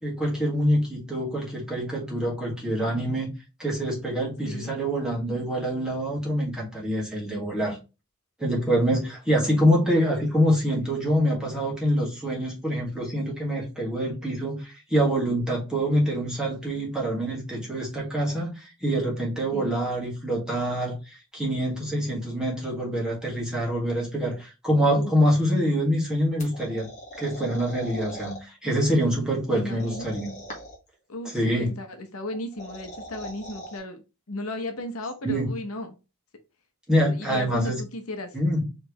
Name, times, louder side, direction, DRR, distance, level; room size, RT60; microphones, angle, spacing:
voice 1, 0.0-3.3 3.6-7.8 8.4-26.9 27.2-30.3 31.2-31.7 35.2-35.5 36.9-37.8 38.3-38.7, equal, 5° right, -4 dB, 1.9 m, -25 dB
sound 1, 26.4-28.4 29.7-30.9 32.3-33.8, equal, 35° left, 1.7 m, -40 dB
voice 2, 29.5-30.1 31.1-34.0 34.3-35.9 37.0-38.3, left 1 dB, 80° left, 7 dB, 0.9 m, -35 dB
4.5 x 3.4 x 3.1 m, 0.28 s
head